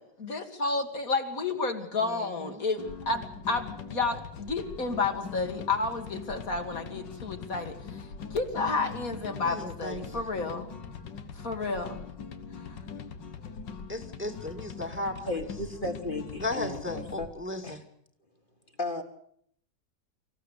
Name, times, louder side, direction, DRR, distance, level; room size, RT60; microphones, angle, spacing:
voice 1, 0.0-8.0 8.3-10.7 11.3-12.0, left 3 dB, 50° left, 5 dB, 2.3 m, -31 dB
voice 2, 2.0-2.6 9.4-10.2 13.9-15.2 16.4-17.8, left 2 dB, 5° right, 3 dB, 2.0 m, -36 dB
sound 1, 2.8-17.3, left 5 dB, 85° left, 2.1 m, -42 dB
voice 3, 15.3-17.3 17.6-17.8 18.8-19.0, left 2 dB, 30° left, 5 dB, 1.9 m, -34 dB
25.0 x 15.5 x 8.2 m, 0.67 s
omnidirectional pair, 1.9 m